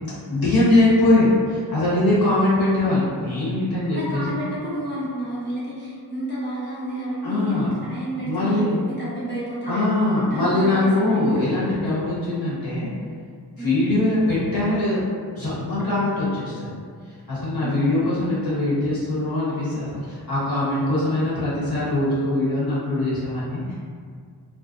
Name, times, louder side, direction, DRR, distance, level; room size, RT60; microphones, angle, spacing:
voice 1, 0.3-4.4 7.2-7.7 8.2-8.8 9.6-12.9 13.6-15.0 15.3-16.7 17.3-23.7, left 2 dB, 55° left, -11 dB, 1.2 m, -22 dB
voice 2, 3.8-11.4 13.5-13.8 17.6-17.8, right 1 dB, 25° left, -9 dB, 0.8 m, -31 dB
2.3 x 2.1 x 2.5 m, 2.1 s
wide cardioid pair, 55°, 42 cm